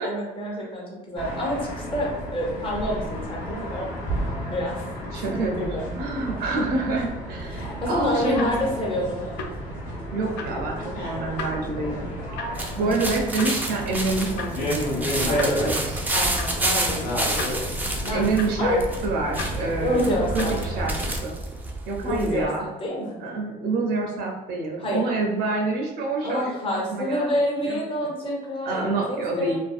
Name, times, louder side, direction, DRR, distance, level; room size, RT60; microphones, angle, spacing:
voice 1, 0.0-3.9 4.5-4.8 5.1-5.9 7.5-9.2 12.7-13.0 16.1-17.6 18.0-18.3 18.6-18.8 19.8-20.6 22.0-23.2 24.8-25.0 26.2-29.6, left 1 dB, 30° left, -3 dB, 0.8 m, -28 dB
sound 1, 1.2-21.2, equal, 55° left, 1.0 m, -31 dB
voice 2, 5.1-8.4 10.1-12.1 12.8-16.0 18.1-20.0 20.3-20.9 21.2-21.3 21.9-22.6 23.2-27.3 27.6-27.8 28.7-29.6, right 3 dB, 70° right, 0 dB, 0.5 m, -27 dB
sound 2, 8.3-20.9, left 3 dB, 85° left, 0.4 m, -40 dB
sound 3, 12.6-22.4, right 1 dB, 10° right, 0.3 m, -30 dB
2.5 x 2.1 x 2.3 m, 1.1 s
cardioid pair, 110°, 17 cm